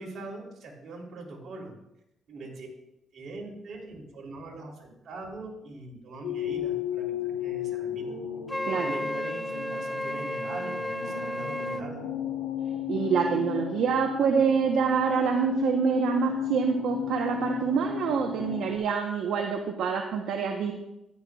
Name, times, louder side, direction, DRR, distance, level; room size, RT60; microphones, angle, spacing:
voice 1, 0.0-1.7 2.3-2.7 3.1-8.2 8.8-12.0, right 2 dB, 65° right, -1 dB, 3.2 m, -42 dB
sound 1, 6.2-18.8, left 10 dB, 90° left, 2.2 m, -34 dB
Wind instrument woodwind instrument, 8.5-11.9, left 1 dB, 5° left, 0.3 m, -33 dB
voice 2, 12.9-20.7, right 6 dB, 80° right, 3 dB, 0.9 m, -26 dB
14.0 x 11.0 x 2.3 m, 0.87 s
cardioid pair, 90°, 0 cm